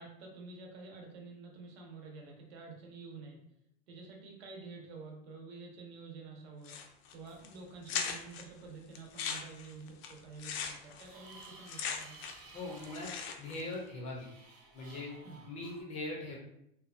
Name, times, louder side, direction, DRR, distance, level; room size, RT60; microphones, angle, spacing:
voice 1, 0.0-3.4 3.9-6.8 7.1-12.2 15.2-15.4, right 4 dB, 80° right, 0 dB, 0.8 m, -49 dB
sound 1, 6.6-7.1 7.4-7.5 7.9-8.4 9.0-12.5 12.8-13.6, left 7 dB, 80° left, 0.5 m, -39 dB
sound 2, 7.3-7.4 9.9-10.0 10.5-15.8, right 3 dB, 30° right, 0.5 m, -56 dB
voice 2, 12.5-13.1 13.4-14.3 14.7-15.1 15.5-16.4, left 2 dB, 25° left, -1 dB, 0.4 m, -40 dB
2.7 x 2.2 x 2.5 m, 0.76 s
supercardioid pair, 165°, 30 cm